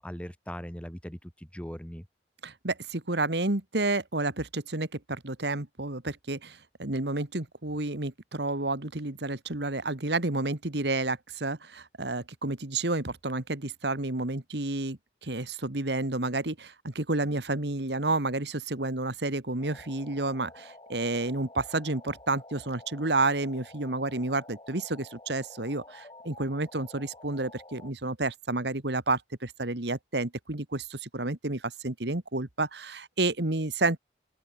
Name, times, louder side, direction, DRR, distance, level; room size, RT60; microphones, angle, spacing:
voice 1, 0.0-2.1, equal, 5° left, 2.6 m, -40 dB
voice 2, 2.4-34.0, right 2 dB, 75° right, 2.0 m, -30 dB
sound 1, 19.6-27.9, left 2 dB, 25° left, 5.2 m, -50 dB
open air
head